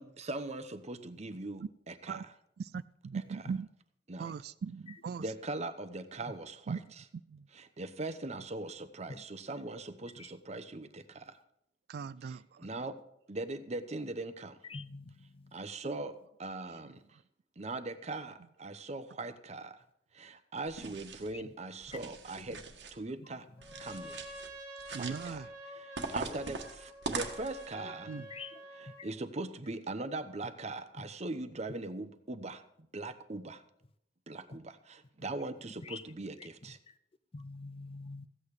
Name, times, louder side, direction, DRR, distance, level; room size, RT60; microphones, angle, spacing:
voice 1, 0.0-2.2 4.1-4.3 5.2-6.8 7.5-11.4 12.6-13.0 13.3-14.6 15.5-17.0 17.6-19.8 20.1-22.6 22.9-23.5 23.8-24.2 25.0-25.4 25.7-28.1 28.7-33.6 34.3-36.8, right 2 dB, 40° right, 0.9 m, -40 dB
voice 2, 2.6-3.7 4.2-5.2 6.7-6.8 7.3-7.5 11.9-12.7 16.8-16.9 20.9-21.0 24.9-25.5 28.1-28.3, right 5 dB, 65° right, 0.3 m, -39 dB
voice 3, 14.6-15.5 21.3-21.4 27.8-27.9 28.3-28.6 35.8-36.0 37.3-38.3, left 3 dB, 35° left, 0.5 m, -45 dB
sound 1, 20.7-21.3 21.8-23.0 23.6-24.5 24.8-25.4 26.0-27.7, right 4 dB, 85° right, 1.6 m, -42 dB
Trumpet, 23.6-29.1, equal, 10° right, 2.4 m, -48 dB
15.0 x 8.7 x 4.9 m
head